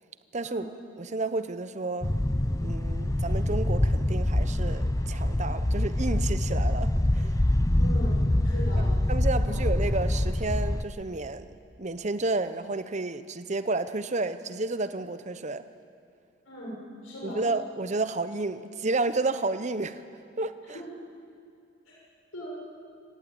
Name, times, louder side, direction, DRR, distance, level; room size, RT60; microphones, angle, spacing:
voice 1, 0.3-0.7 1.0-2.1 2.6-7.3 8.8-15.6 17.2-20.0 20.4-20.8, right 3 dB, 35° right, 12 dB, 0.8 m, -31 dB
sound 1, 2.0-10.8, left 1 dB, 15° left, 0.6 m, -25 dB
voice 2, 7.8-8.2 8.4-8.9 9.5-9.6 16.4-17.4 20.6-20.8 21.8-21.9 22.3-22.5, equal, 85° left, -4 dB, 6.5 m, -39 dB
26.5 x 15.5 x 8.9 m, 2.4 s
head